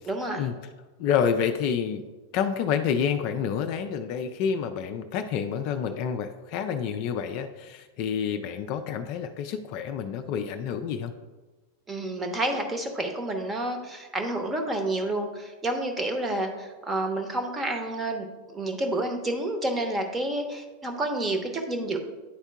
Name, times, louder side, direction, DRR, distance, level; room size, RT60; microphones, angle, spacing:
voice 1, 0.1-0.4 11.9-18.3 18.5-22.0, right 1 dB, 15° right, 4 dB, 0.9 m, -29 dB
voice 2, 1.0-2.1 2.3-11.1, left 7 dB, 45° left, 7 dB, 0.4 m, -28 dB
10.0 x 4.4 x 2.3 m, 1.2 s
figure-of-eight pair, 90°, 0 cm